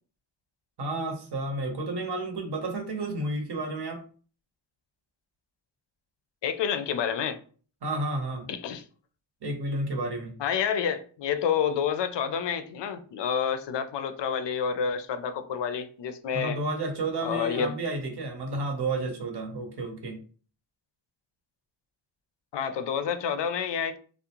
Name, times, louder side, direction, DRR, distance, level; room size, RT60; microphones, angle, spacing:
voice 1, 0.8-4.0 7.8-8.4 9.4-10.3 16.3-20.2, right 2 dB, 55° right, 0.8 m, -31 dB
voice 2, 6.4-7.4 8.5-8.8 10.4-16.6 17.2-17.8 22.5-24.0, left 7 dB, 60° left, 0.5 m, -29 dB
2.4 x 2.1 x 2.8 m
cardioid pair, 70°, 49 cm